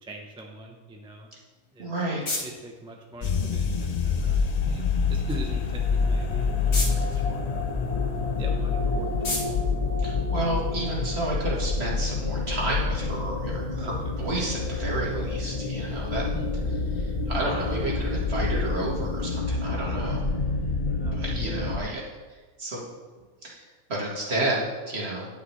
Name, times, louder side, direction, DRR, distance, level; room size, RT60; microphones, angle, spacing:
voice 1, 0.0-1.3 1.7-1.9 2.4-6.8 7.1-7.7 8.4-9.5 13.8-13.9 16.3-16.5 17.7-17.8 20.9-21.7, right 1 dB, 5° right, 1 dB, 0.5 m, -42 dB
sound 1, 1.5-10.9, left 2 dB, 60° left, 2.2 m, -39 dB
voice 2, 1.8-2.2 10.0-16.2 16.9-20.3 21.1-22.0 22.6-22.8 23.4-25.3, right 2 dB, 40° right, -3 dB, 1.9 m, -31 dB
sound 2, 3.2-21.8, left 4 dB, 85° left, 0.3 m, -27 dB
10.0 x 8.6 x 3.2 m, 1.3 s
omnidirectional pair, 1.6 m